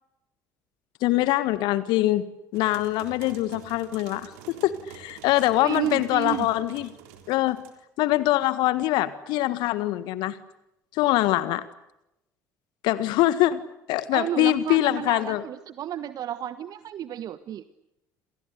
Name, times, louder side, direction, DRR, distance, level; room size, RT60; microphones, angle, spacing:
voice 1, 1.0-2.2 2.5-6.9 7.3-7.6 8.0-10.4 10.9-11.6 12.8-13.6 13.9-15.4, left 15 dB, 60° left, 14 dB, 1.6 m, -23 dB
sound 1, 2.5-7.7, right 10 dB, 65° right, 3.8 m, -47 dB
voice 2, 5.6-6.5 14.1-17.6, right 11 dB, 45° right, 13 dB, 1.4 m, -32 dB
29.0 x 27.0 x 6.8 m, 0.88 s
figure-of-eight pair, 55°, 9 cm